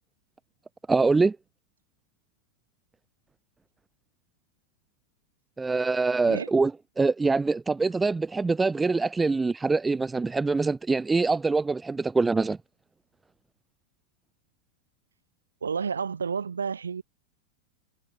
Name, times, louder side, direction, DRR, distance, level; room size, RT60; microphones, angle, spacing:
voice 1, 0.9-1.4 5.6-6.7 7.0-12.6, right 3 dB, 10° right, 0.3 m, -24 dB
voice 2, 15.6-17.0, right 6 dB, 70° right, 4.1 m, -30 dB
figure-of-eight pair, 90°, 0 cm